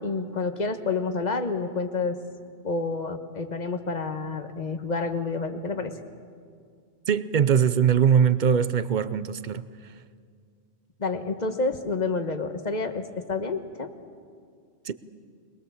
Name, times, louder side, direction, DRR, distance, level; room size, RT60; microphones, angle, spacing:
voice 1, 0.0-2.2 2.6-5.9 11.0-13.9, left 3 dB, 40° left, 1.3 m, -29 dB
voice 2, 7.1-9.6 14.8-14.9, right 7 dB, 50° right, 0.7 m, -21 dB
22.5 x 21.0 x 7.2 m
omnidirectional pair, 1.1 m